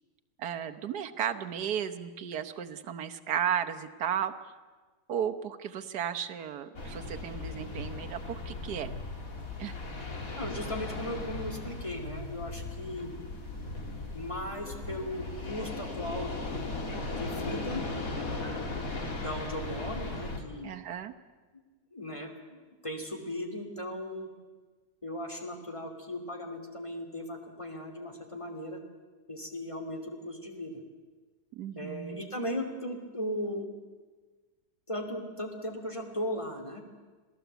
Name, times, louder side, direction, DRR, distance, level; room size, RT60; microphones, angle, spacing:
voice 1, 0.4-4.5 5.1-8.9 9.6-9.8 20.6-21.1 31.5-32.3, right 9 dB, 80° right, 7 dB, 1.6 m, -34 dB
sound 1, 6.8-20.4, left 3 dB, 60° left, 2.9 m, -37 dB
voice 2, 10.4-13.1 14.1-16.3 17.1-17.8 19.2-20.7 21.9-22.6 22.8-24.3 25.0-28.8 29.3-30.8 31.8-33.7 34.9-36.8, left 1 dB, 20° left, 4 dB, 2.7 m, -37 dB
26.5 x 17.5 x 8.1 m, 1.4 s
omnidirectional pair, 1.7 m